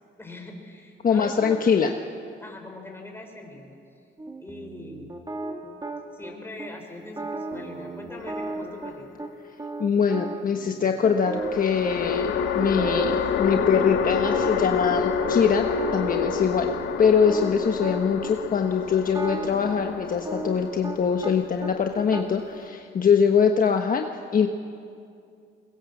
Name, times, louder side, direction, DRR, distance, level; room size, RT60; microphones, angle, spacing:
voice 1, 0.2-2.0 2.4-3.8 4.4-5.1 6.1-9.2, left 1 dB, 10° left, 2 dB, 5.3 m, -41 dB
voice 2, 1.0-1.9 9.8-16.7 17.0-24.1 24.3-24.5, left 6 dB, 45° left, 4 dB, 1.3 m, -23 dB
sound 1, 4.2-6.3 6.6-6.7 7.0-9.3 9.6-11.9 12.2-12.3 12.6-13.2 13.5-15.3 15.6-18.3 19.0-21.3 21.6-22.2, right 2 dB, 20° right, 2.9 m, -35 dB
sound 2, 8.2-9.1 11.3-22.7, left 6 dB, 85° left, 1.6 m, -28 dB
23.5 x 21.5 x 7.3 m, 2.4 s
cardioid pair, 90°, 20 cm